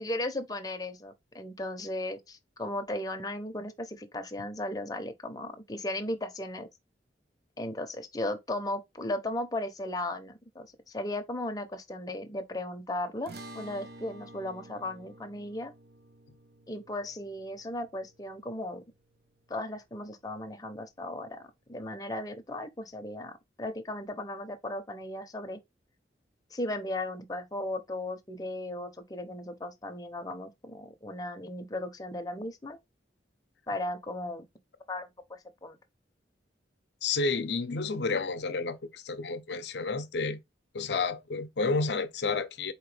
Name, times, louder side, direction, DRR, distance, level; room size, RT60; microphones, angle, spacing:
voice 1, 0.0-6.7 7.6-15.7 16.7-18.8 19.5-21.4 21.7-25.6 26.5-32.8 33.7-34.5 34.9-35.8, left 1 dB, 20° left, 0.6 m, -36 dB
sound 1, 13.3-19.8, right 1 dB, 60° right, 0.6 m, -50 dB
voice 2, 37.0-40.4 40.7-42.7, left 4 dB, 70° left, 0.6 m, -30 dB
4.3 x 2.9 x 3.2 m
head